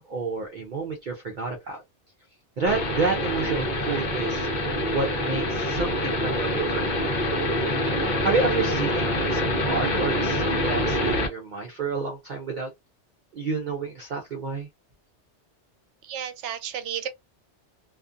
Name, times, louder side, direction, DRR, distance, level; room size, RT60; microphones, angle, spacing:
voice 1, 0.0-1.8 2.6-4.5 4.9-7.0 8.2-12.7 13.3-14.7, right 4 dB, 55° right, 0.6 m, -29 dB
sound 1, 2.7-11.3, left 1 dB, 45° left, 0.8 m, -25 dB
voice 2, 16.0-17.1, right 9 dB, 80° right, 0.9 m, -32 dB
2.4 x 2.4 x 2.4 m
omnidirectional pair, 1.2 m